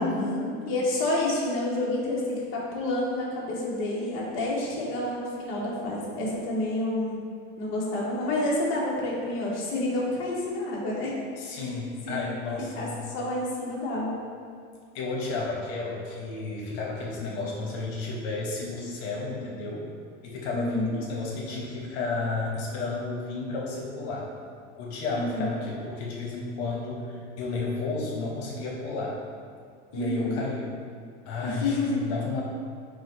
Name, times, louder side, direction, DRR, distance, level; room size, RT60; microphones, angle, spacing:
voice 1, 0.0-0.6 11.4-13.0 14.9-19.9 20.2-24.3 24.8-29.2 29.9-30.7 31.3-32.4, left 3 dB, 80° left, -3 dB, 0.9 m, -32 dB
voice 2, 0.7-7.2 7.6-11.1 11.5-11.7 12.1-12.3 12.7-12.9 13.1-14.2 20.5-21.0 25.1-25.5 29.9-30.4 31.4-32.1, left 1 dB, 45° left, -5 dB, 0.9 m, -29 dB
4.8 x 2.1 x 4.0 m, 2.2 s
cardioid pair, 170°, 31 cm